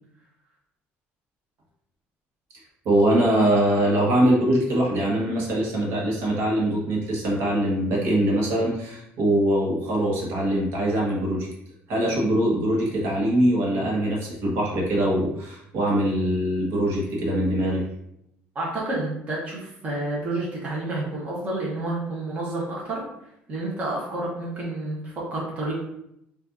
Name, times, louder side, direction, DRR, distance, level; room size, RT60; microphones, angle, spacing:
voice 1, 2.8-11.5 11.9-17.9, right 1 dB, 60° right, -3 dB, 1.2 m, -22 dB
voice 2, 18.5-23.0 23.5-25.7, right 2 dB, 30° right, -4 dB, 1.0 m, -29 dB
5.4 x 2.6 x 2.6 m, 0.78 s
cardioid pair, 160°, 5 cm